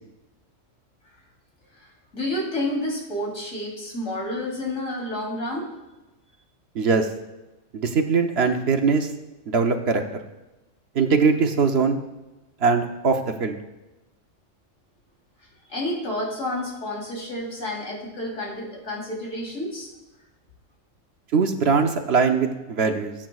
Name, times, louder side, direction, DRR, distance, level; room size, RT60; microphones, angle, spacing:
voice 1, 2.1-5.7 15.7-19.9, left 1 dB, 80° left, -3 dB, 3.7 m, -30 dB
voice 2, 6.7-7.1 7.7-9.1 9.5-10.2 10.9-12.0 12.6-13.6 21.3-23.1, right 5 dB, 55° right, 5 dB, 1.0 m, -21 dB
20.0 x 8.8 x 2.4 m, 1.0 s
omnidirectional pair, 1.3 m